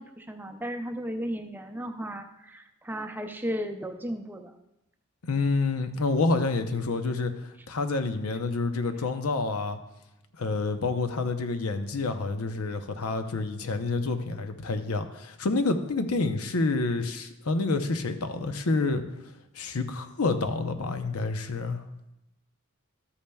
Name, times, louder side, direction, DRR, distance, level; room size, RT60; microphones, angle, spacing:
voice 1, 0.0-4.5, equal, 10° right, 5 dB, 0.5 m, -35 dB
voice 2, 5.2-7.3 7.7-9.8 10.4-19.0 19.5-21.8, left 3 dB, 85° left, 8 dB, 0.7 m, -28 dB
12.5 x 8.5 x 2.3 m, 0.91 s
head